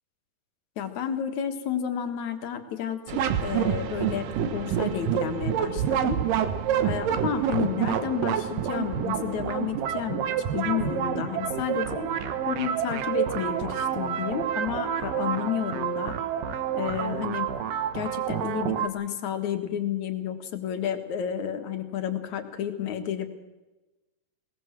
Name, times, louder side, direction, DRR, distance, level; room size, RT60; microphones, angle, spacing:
voice 1, 0.8-6.2 6.8-10.2 10.5-12.1 12.5-16.1 16.7-17.5 17.9-23.3, left 9 dB, 60° left, 7 dB, 2.8 m, -31 dB
sound 1, 3.1-18.9, right 9 dB, 75° right, 2.8 m, -28 dB
20.5 x 19.0 x 7.5 m, 1.1 s
omnidirectional pair, 4.0 m